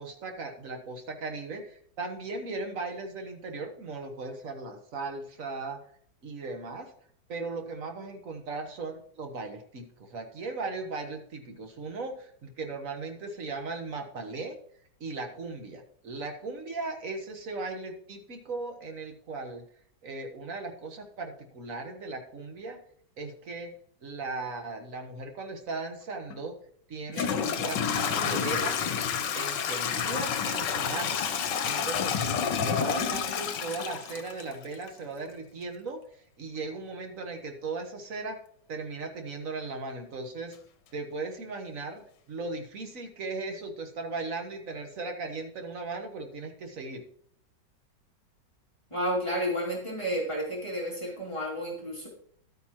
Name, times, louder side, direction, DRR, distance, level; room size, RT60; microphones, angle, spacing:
voice 1, 0.0-5.8 6.2-6.9 7.3-14.6 15.0-19.6 20.0-22.8 23.2-23.7 24.0-26.5 26.9-29.0 29.3-31.2 31.6-36.0 36.4-38.4 38.7-40.6 40.9-42.0 42.3-47.0, right 3 dB, 50° right, 5 dB, 1.6 m, -37 dB
Toilet flush / Trickle dribble, 26.3-26.4 27.1-34.9, left 7 dB, 75° left, 1.5 m, -29 dB
voice 2, 48.9-52.1, equal, 15° left, -4 dB, 2.6 m, -31 dB
12.0 x 9.1 x 3.0 m, 0.62 s
omnidirectional pair, 1.9 m